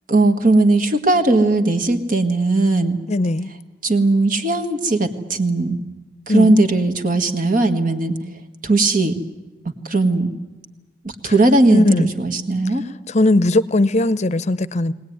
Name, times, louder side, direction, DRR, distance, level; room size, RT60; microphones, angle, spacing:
voice 1, 0.1-3.0 3.8-5.8 6.3-8.2 8.6-9.1 9.9-10.3 11.2-12.8, right 2 dB, 50° right, 1.7 m, -17 dB
voice 2, 3.1-3.5 6.3-6.5 11.7-12.1 13.1-14.9, left 2 dB, 40° left, 0.7 m, -18 dB
22.0 x 19.0 x 9.5 m
head